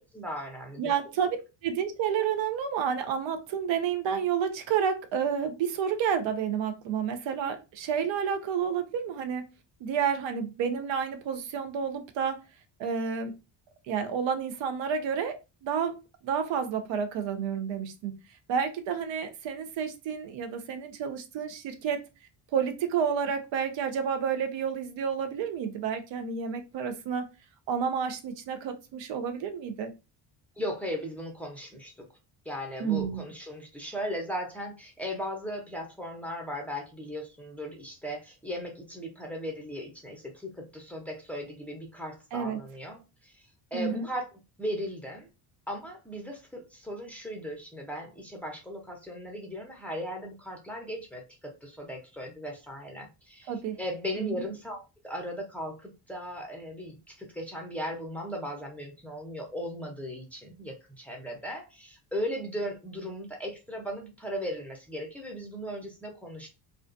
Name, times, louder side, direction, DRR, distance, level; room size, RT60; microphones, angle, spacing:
voice 1, 0.0-0.9 30.6-31.9 32.5-43.4 43.7-44.3 44.6-45.3 45.7-53.5 53.8-66.5, equal, 5° left, 0 dB, 0.6 m, -37 dB
voice 2, 0.8-1.4 1.6-9.4 9.8-12.4 12.8-13.3 13.9-16.0 16.2-18.2 18.5-22.0 22.5-27.3 27.7-29.9 32.8-33.3 42.3-42.6 43.7-44.1 53.5-53.8 54.2-54.4, right 7 dB, 75° right, 8 dB, 0.6 m, -30 dB
2.4 x 2.2 x 2.4 m, 0.27 s
cardioid pair, 125°, 45 cm